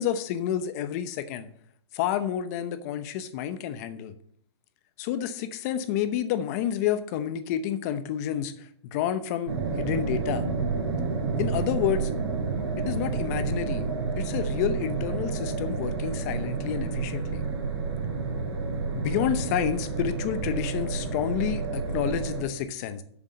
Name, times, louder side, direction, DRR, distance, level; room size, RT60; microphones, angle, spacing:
voice 1, 0.0-1.5 1.9-4.1 5.0-8.5 8.8-10.4 11.4-12.1 12.8-13.9 14.2-17.5 18.9-23.0, left 10 dB, 35° left, 11 dB, 0.8 m, -29 dB
sound 1, 9.5-22.4, right 4 dB, 60° right, 3.6 m, -30 dB
7.0 x 6.8 x 7.4 m, 0.64 s
hypercardioid pair, 160°, 15 cm